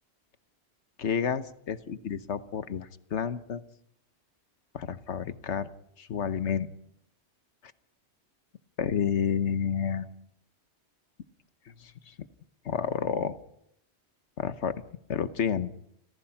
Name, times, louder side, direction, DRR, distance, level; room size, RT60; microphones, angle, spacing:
voice 1, 1.0-3.6 4.7-5.7 6.0-6.7 8.8-10.1 11.8-11.9 12.6-13.4 14.4-14.7 15.1-15.7, left 7 dB, 85° left, 12 dB, 1.3 m, -30 dB
29.5 x 16.0 x 5.8 m, 0.74 s
omnidirectional pair, 1.1 m